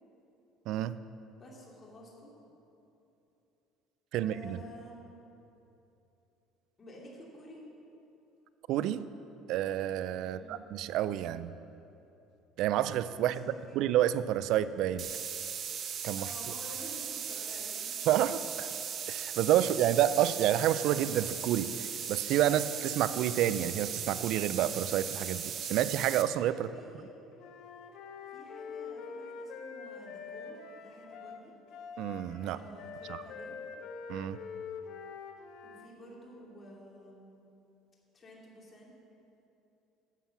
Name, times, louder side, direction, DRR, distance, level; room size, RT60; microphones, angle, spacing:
voice 1, 1.4-2.3 4.2-5.0 6.8-7.6 10.2-10.6 13.1-13.8 16.2-18.1 26.5-27.0 28.2-31.5 32.4-33.5 35.6-37.4 38.1-38.9, equal, 30° left, -3 dB, 2.8 m, -51 dB
voice 2, 4.1-4.6 8.7-9.0 9.5-11.5 12.6-13.4 13.7-15.1 16.0-16.3 18.1-18.7 19.1-26.7 32.0-32.6 33.1-33.2 34.1-34.4, right 12 dB, 65° right, 15 dB, 0.4 m, -29 dB
sound 1, 15.0-26.2, right 8 dB, 45° right, 0.8 m, -38 dB
Wind instrument woodwind instrument, 27.4-35.9, left 5 dB, 65° left, 1.0 m, -45 dB
11.5 x 7.4 x 5.9 m, 2.9 s
cardioid pair, 115°, 0 cm